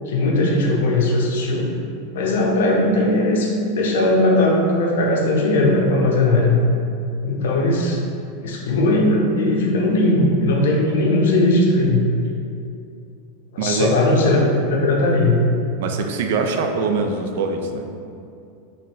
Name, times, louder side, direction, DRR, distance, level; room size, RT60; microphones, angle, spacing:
voice 1, 0.1-1.7 2.1-6.6 7.2-8.0 8.4-12.0 13.5-15.4, left 2 dB, 85° left, -1 dB, 0.7 m, -18 dB
voice 2, 13.6-13.9 15.8-17.9, right 4 dB, 60° right, 5 dB, 0.3 m, -23 dB
4.2 x 2.5 x 3.0 m, 2.5 s
supercardioid pair, 170°, 0 cm